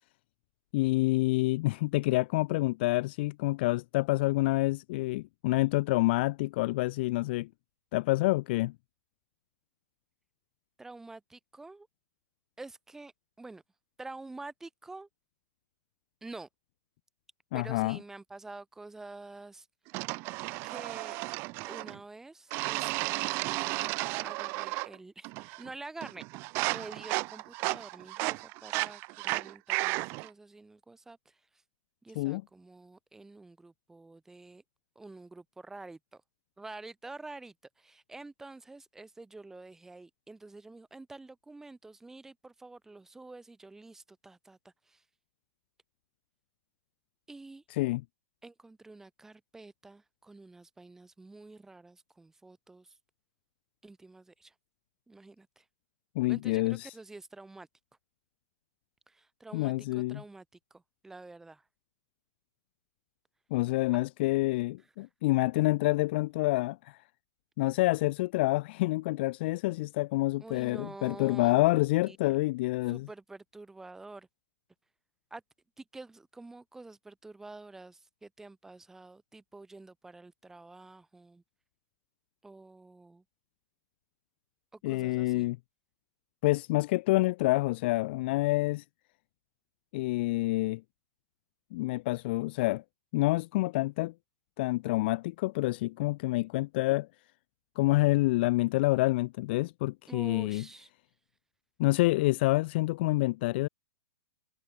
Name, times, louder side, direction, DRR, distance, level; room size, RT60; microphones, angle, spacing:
voice 1, 0.7-7.5 7.9-8.7 17.5-18.0 32.2-32.4 47.7-48.0 56.2-56.9 59.5-60.2 63.5-67.0 67.6-73.1 84.8-85.6 86.4-88.8 89.9-90.8 91.7-92.8 93.1-94.1 94.6-97.1 97.8-100.6 101.8-103.7, left 20 dB, 40° left, 0.4 m, -27 dB
voice 2, 10.8-11.9 12.6-13.1 13.4-13.6 14.0-15.1 16.2-16.5 17.5-19.7 20.6-21.2 21.7-24.0 24.2-26.2 26.7-31.6 32.0-34.6 34.9-36.2 36.6-45.0 47.3-47.6 48.4-53.0 53.8-54.5 55.1-55.7 56.3-57.7 59.1-60.4 60.7-61.7 70.4-72.4 72.9-74.3 75.3-75.4 75.8-81.4 82.4-83.2 84.7-85.5 100.1-100.9, right 3 dB, 5° right, 2.6 m, -48 dB
sound 1, 19.9-22.0 22.5-25.0 25.2-25.7 26.0-30.3, right 25 dB, 25° right, 0.4 m, -33 dB
hypercardioid pair, 155°, 9 cm